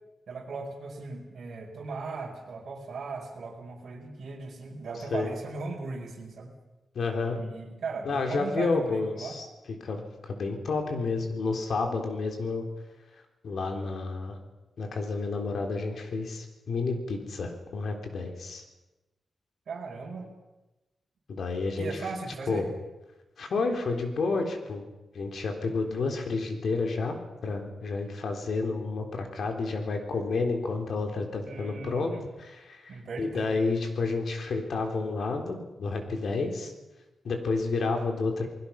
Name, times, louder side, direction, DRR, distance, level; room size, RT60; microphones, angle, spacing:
voice 1, 0.3-6.5 7.4-9.4 19.7-20.3 21.8-22.7 31.4-32.2 32.9-33.5, right 4 dB, 55° right, -3 dB, 4.6 m, -38 dB
voice 2, 7.0-7.4 8.1-9.5 9.8-12.7 13.4-14.4 14.8-18.6 21.3-21.9 22.5-22.7 23.4-24.8 25.1-32.1 32.4-36.7 37.2-38.5, left 3 dB, 65° left, 4 dB, 3.6 m, -30 dB
29.0 x 20.5 x 5.9 m, 1.1 s
wide cardioid pair, 165°, 0 cm